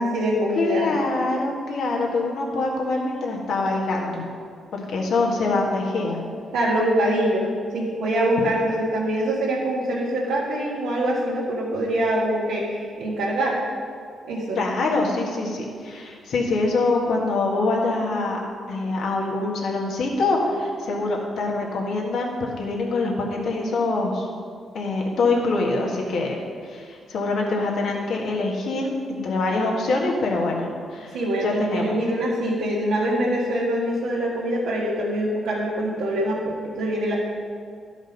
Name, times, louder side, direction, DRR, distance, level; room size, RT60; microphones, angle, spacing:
voice 1, 0.0-0.9 6.5-13.6 14.2-14.6 31.1-37.1, right 1 dB, 85° right, -8 dB, 1.6 m, -24 dB
voice 2, 0.5-4.2 4.7-6.2 14.5-18.4 18.7-24.3 24.7-26.4 26.6-31.1 31.4-32.0, left 3 dB, 75° left, -1 dB, 1.6 m, -24 dB
11.5 x 5.1 x 5.3 m, 2.1 s
cardioid pair, 65°, 0 cm